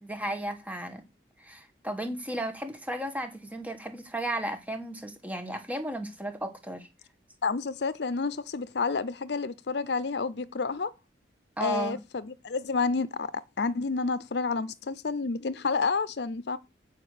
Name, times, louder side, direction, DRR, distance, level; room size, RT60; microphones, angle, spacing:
voice 1, 0.0-1.0 1.4-6.9 11.6-12.0, right 1 dB, 10° right, 1.2 m, -34 dB
voice 2, 7.4-10.9 11.6-12.0 12.3-13.3 13.6-16.6, left 4 dB, 70° left, 0.6 m, -29 dB
8.9 x 4.9 x 6.5 m
head